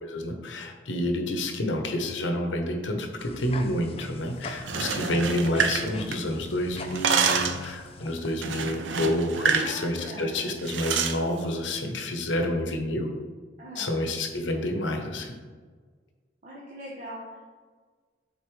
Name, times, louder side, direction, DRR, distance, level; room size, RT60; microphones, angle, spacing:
voice 1, 0.0-13.1 13.7-15.4, left 1 dB, 80° left, 4 dB, 0.8 m, -29 dB
sound 1, 3.2-8.4, left 3 dB, 30° left, 0.4 m, -41 dB
sound 2, 4.6-6.5 6.8-7.7 8.4-9.7 10.0-10.2 10.6-11.2, right 6 dB, 75° right, 0.5 m, -27 dB
voice 2, 4.7-5.3 9.4-10.6 13.6-14.0 16.4-17.4, equal, 40° right, -6 dB, 1.0 m, -41 dB
8.1 x 4.0 x 3.2 m, 1.5 s
head